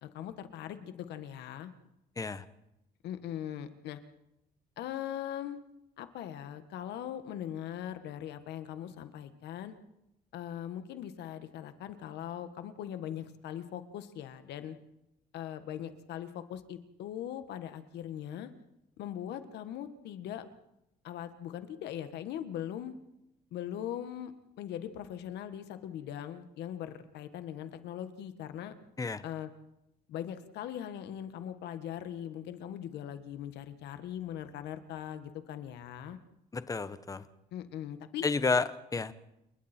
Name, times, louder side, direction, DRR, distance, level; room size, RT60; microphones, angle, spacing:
voice 1, 0.0-1.7 3.0-4.0 4.8-5.6 6.0-9.7 10.3-14.8 15.3-18.5 19.0-20.5 21.0-22.9 23.5-24.3 24.6-28.7 29.2-29.5 30.1-36.2 37.5-38.2, left 10 dB, 85° left, 10 dB, 1.6 m, -40 dB
voice 2, 36.5-37.2 38.2-39.1, left 4 dB, 20° left, 13 dB, 1.0 m, -31 dB
29.0 x 21.0 x 4.5 m, 0.86 s
cardioid pair, 105°, 17 cm